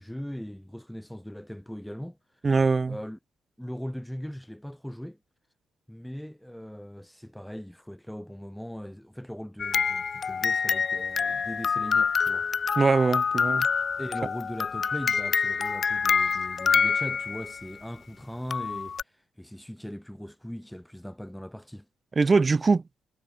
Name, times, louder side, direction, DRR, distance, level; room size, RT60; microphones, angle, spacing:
voice 1, 0.0-2.5 2.9-3.2 3.6-5.2 5.9-12.5 14.0-21.9, equal, 5° left, 4.3 m, -39 dB
voice 2, 2.4-3.0 12.8-13.7 22.2-22.8, right 4 dB, 30° right, 1.0 m, -22 dB
sound 1, 9.6-17.6 18.5-19.0, left 6 dB, 45° left, 0.4 m, -26 dB
cardioid pair, 90°, 0 cm